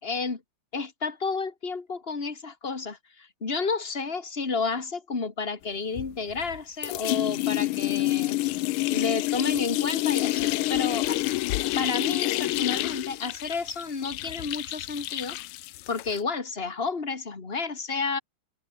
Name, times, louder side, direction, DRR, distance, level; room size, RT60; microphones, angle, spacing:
voice 1, 0.0-0.4 0.7-8.4 8.9-11.2 11.8-15.4 15.9-18.2, left 4 dB, 25° left, 2.6 m, -31 dB
sound 1, 6.0-6.6 6.8-16.2, left 17 dB, 80° left, 1.5 m, -28 dB
omnidirectional pair, 2.3 m